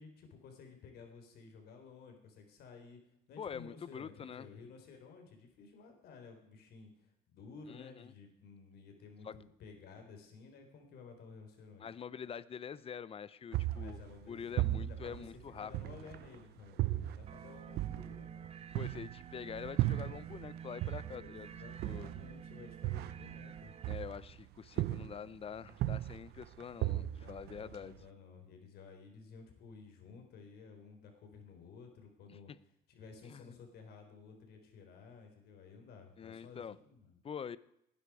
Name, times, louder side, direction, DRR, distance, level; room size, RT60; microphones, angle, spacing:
voice 1, 0.0-3.0 3.3-11.9 13.7-15.3 15.5-18.5 21.1-23.8 27.1-32.5 32.9-37.2, left 5 dB, 70° left, 4 dB, 4.0 m, -54 dB
voice 2, 3.4-4.5 7.7-8.1 9.2-9.4 11.8-16.1 18.7-21.5 21.8-22.1 23.9-27.9 32.3-32.4 33.2-33.6 36.2-36.8 37.2-37.6, left 7 dB, 35° left, 18 dB, 0.7 m, -45 dB
sound 1, 13.5-16.3 16.8-20.5 20.8-24.5 24.8-25.4 25.7-28.0, right 15 dB, 70° right, 0.6 m, -36 dB
sound 2, 17.3-23.9, right 8 dB, 35° right, 0.8 m, -50 dB
19.0 x 10.5 x 4.9 m, 0.78 s
cardioid pair, 110°, 17 cm